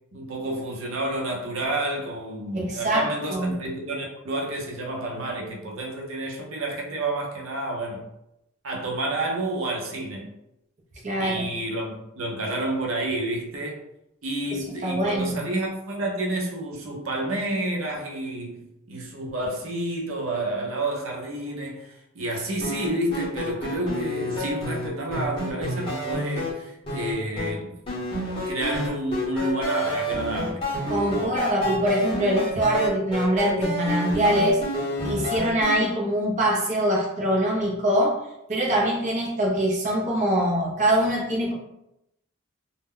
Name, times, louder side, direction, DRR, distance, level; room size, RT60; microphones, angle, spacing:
voice 1, 0.1-8.0 8.6-10.3 11.2-13.8 14.2-27.7 28.5-30.6 31.1-31.5, right 1 dB, 85° right, -1 dB, 0.6 m, -30 dB
voice 2, 2.5-3.6 11.0-11.5 14.5-15.4 30.9-34.7 35.0-38.2 38.5-41.5, equal, 35° right, -3 dB, 0.5 m, -23 dB
sound 1, 22.6-26.5 26.9-27.5 27.9-35.8, equal, 25° left, 0.8 m, -29 dB
2.1 x 2.1 x 3.5 m, 0.83 s
head